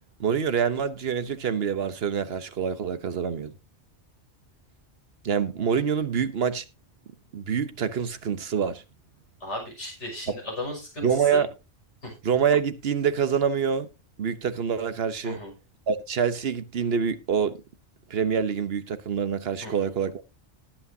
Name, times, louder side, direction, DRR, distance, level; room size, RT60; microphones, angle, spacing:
voice 1, 0.2-3.5 5.2-6.6 7.3-8.8 11.0-11.5 12.2-13.9 14.2-15.4 15.9-17.6 18.1-20.2, right 7 dB, 60° right, 1.2 m, -26 dB
voice 2, 9.4-11.4 12.0-12.1 15.2-15.5 19.6-19.9, left 1 dB, 85° left, 6.3 m, -36 dB
19.0 x 8.3 x 2.7 m
omnidirectional pair, 1.2 m